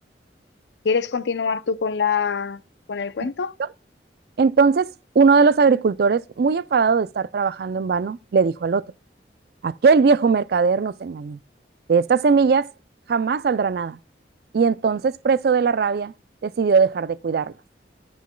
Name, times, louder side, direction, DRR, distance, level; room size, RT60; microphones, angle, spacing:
voice 1, 0.8-2.6 2.9-3.5, left 5 dB, 70° left, 0.5 m, -24 dB
voice 2, 4.4-8.9 9.6-11.4 11.9-12.7 13.1-14.0 14.5-16.1 16.4-17.5, right 5 dB, 60° right, 0.4 m, -19 dB
14.5 x 6.3 x 2.2 m
head